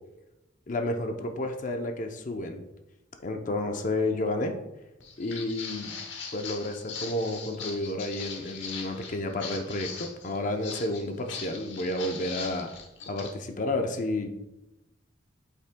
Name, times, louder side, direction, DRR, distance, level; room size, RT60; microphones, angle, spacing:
voice 1, 0.7-2.6 3.2-4.6 5.2-6.0 6.3-12.7 13.1-14.3, left 1 dB, 40° left, 5 dB, 0.6 m, -31 dB
Walk footsteps, 5.0-13.3, left 5 dB, 65° left, 1.0 m, -40 dB
8.5 x 5.5 x 2.2 m, 0.95 s
head